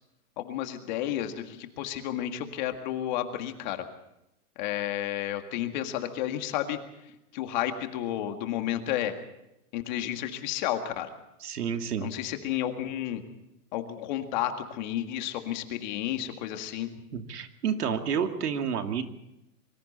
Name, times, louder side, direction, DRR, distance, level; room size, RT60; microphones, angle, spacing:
voice 1, 0.4-3.8 4.6-6.8 7.3-9.2 9.7-11.1 12.0-13.2 13.7-16.9, left 12 dB, 30° left, 6 dB, 1.9 m, -31 dB
voice 2, 11.4-12.1 17.1-19.0, right 7 dB, 85° right, 5 dB, 2.7 m, -30 dB
26.5 x 24.0 x 4.3 m, 0.87 s
hypercardioid pair, 175°, 45 cm